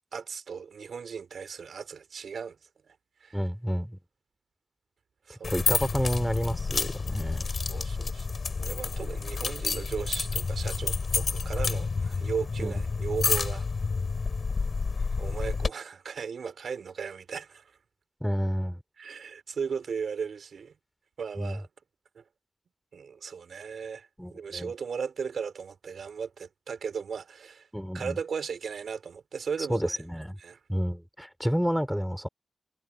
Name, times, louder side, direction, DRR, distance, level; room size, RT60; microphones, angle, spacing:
voice 1, 0.1-2.6 2.8-2.9 3.2-3.4 5.3-5.6 7.5-8.3 8.5-13.7 15.2-17.7 19.0-20.7 21.2-21.7 22.1-22.2 22.9-27.7 27.9-30.0 30.4-30.6, right 6 dB, 85° right, 4.4 m, -36 dB
voice 2, 3.3-4.0 5.3-7.5 12.6-12.7 18.2-18.8 21.4-21.6 24.2-24.7 27.7-28.2 29.7-30.3 30.7-32.3, equal, ahead, 4.7 m, -30 dB
sound 1, 5.4-15.7, left 4 dB, 50° left, 4.6 m, -29 dB
wide cardioid pair, 115°, 0 cm